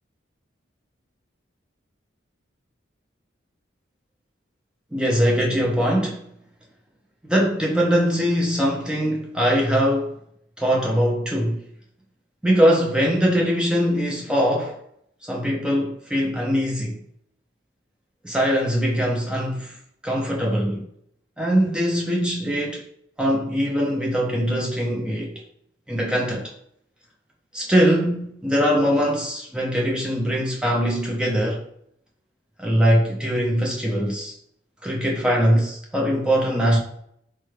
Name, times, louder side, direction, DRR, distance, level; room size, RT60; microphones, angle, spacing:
voice 1, 4.9-6.2 7.2-10.2 10.6-11.6 12.4-14.8 15.3-17.0 18.2-19.8 20.0-20.9 21.4-22.8 23.2-25.4 25.9-26.5 27.5-31.7 32.6-34.3 34.8-36.8, equal, 5° right, 0.4 m, -22 dB
4.6 x 2.1 x 3.1 m
head